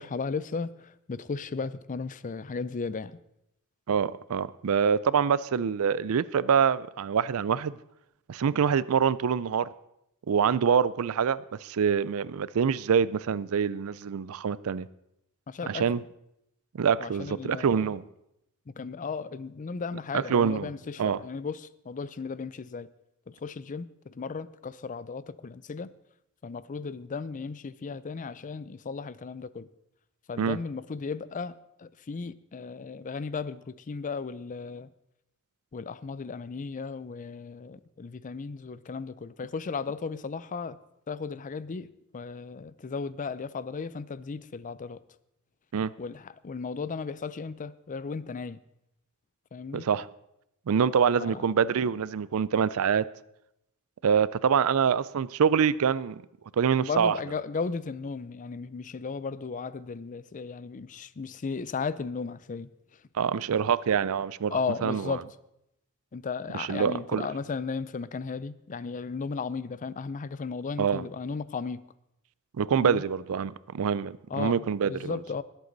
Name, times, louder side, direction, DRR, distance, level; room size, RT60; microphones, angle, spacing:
voice 1, 0.0-3.1 15.5-15.9 17.0-17.9 18.7-22.9 23.3-25.9 26.4-29.7 30.3-31.5 31.8-34.9 35.7-40.8 41.1-45.0 46.0-48.6 49.5-49.9 51.2-51.5 56.8-62.7 64.5-65.2 66.1-71.8 72.7-73.0 74.3-75.4, left 5 dB, 35° left, 0.4 m, -35 dB
voice 2, 3.9-7.8 8.3-9.7 10.3-14.9 15.7-16.0 16.7-18.0 20.1-20.7 21.0-21.2 30.4-30.6 45.7-45.9 49.7-50.1 50.7-53.1 54.0-56.2 56.5-57.2 63.1-65.2 66.5-67.3 70.8-71.1 72.5-75.2, right 7 dB, 70° right, 0.4 m, -25 dB
19.5 x 8.2 x 4.0 m
head